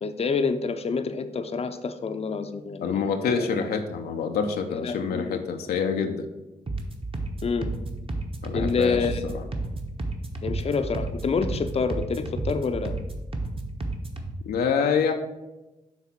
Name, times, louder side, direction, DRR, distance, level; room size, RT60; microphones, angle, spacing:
voice 1, 0.0-3.5 4.7-5.4 7.4-7.7 8.5-9.2 10.4-13.0, left 5 dB, 40° left, 9 dB, 0.6 m, -28 dB
voice 2, 2.8-6.3 8.4-9.4 14.5-15.1, left 6 dB, 80° left, 5 dB, 0.5 m, -26 dB
sound 1, 6.7-14.3, right 2 dB, 35° right, 1.1 m, -32 dB
6.0 x 3.5 x 5.9 m, 1.0 s
supercardioid pair, 45°, 16 cm